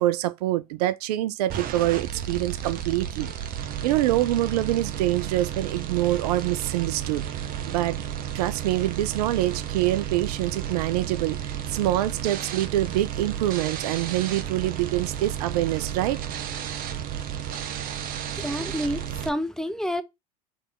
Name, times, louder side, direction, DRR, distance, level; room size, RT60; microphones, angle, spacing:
voice 1, 0.0-3.3 3.8-8.0 8.3-16.2, right 15 dB, 65° right, 0.4 m, -25 dB
sound 1, 1.5-19.3, right 10 dB, 45° right, 0.8 m, -32 dB
voice 2, 18.4-20.0, equal, 5° left, 0.5 m, -29 dB
3.4 x 3.2 x 4.4 m
hypercardioid pair, 75°, 21 cm